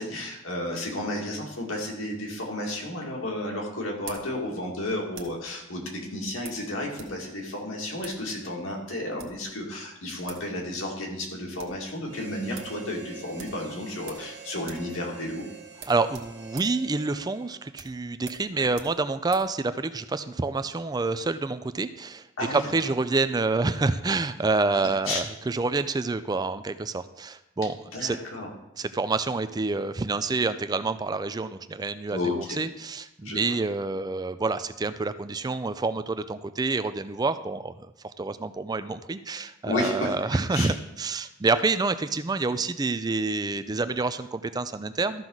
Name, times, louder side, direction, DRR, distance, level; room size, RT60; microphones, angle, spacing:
voice 1, 0.0-15.5 22.4-22.7 25.1-25.2 27.9-28.5 32.1-32.6 33.2-33.4 39.7-40.1 40.5-40.7, left 1 dB, 85° left, -1 dB, 2.2 m, -32 dB
sound 1, 2.6-5.5 6.4-7.2 7.4-7.5 8.0-8.2 9.0-9.5 10.0-10.1 10.3-10.5 10.8-10.9 11.2-11.8 12.2-12.3 12.5-12.8 13.4-14.3 14.6-14.9 15.2-15.3 15.7-19.5, right 6 dB, 80° right, 1.4 m, -46 dB
Harmonica, 12.1-17.9, right 6 dB, 55° right, 1.3 m, -46 dB
voice 2, 15.9-28.2 28.8-37.7 38.0-45.3, right 3 dB, 20° right, 12 dB, 0.4 m, -28 dB
13.5 x 6.0 x 3.9 m, 0.90 s
head